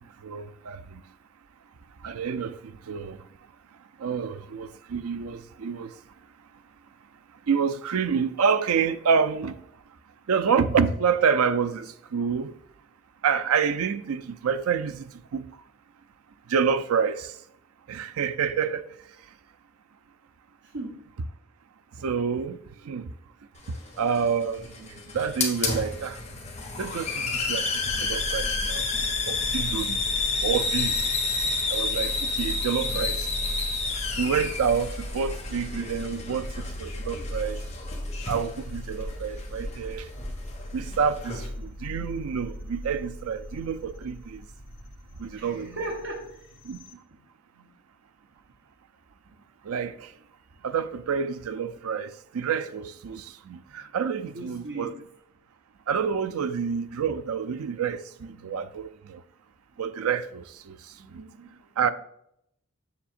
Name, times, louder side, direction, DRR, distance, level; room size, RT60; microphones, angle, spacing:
voice 1, 0.2-1.0 2.0-3.2 4.0-5.9 7.5-9.6 10.3-12.5 13.2-15.5 16.5-17.4 17.9-18.9 22.0-22.6 22.8-23.1 24.0-24.9 25.1-26.2 26.8-27.7 28.0-28.8 29.3-30.0 30.4-31.0 31.7-33.3 34.2-36.5 36.8-37.6 38.3-40.1 40.7-44.4 45.2-45.7 46.7-46.8 49.6-50.1 50.6-54.9 55.9-59.2 59.8-60.8 61.1-61.2 61.8-61.9, right 6 dB, 85° right, 0.4 m, -28 dB
voice 2, 20.6-21.1 45.1-46.6 47.5-47.7 49.2-49.4 50.5-50.6 53.7-53.8 54.3-55.0 58.3-58.6 60.9-61.9, right 2 dB, 55° right, 0.9 m, -40 dB
Hiss, 23.6-41.5, left 3 dB, 30° left, 1.3 m, -31 dB
sound 1, 27.7-46.9, left 1 dB, 55° left, 1.5 m, -38 dB
7.2 x 7.0 x 2.5 m
head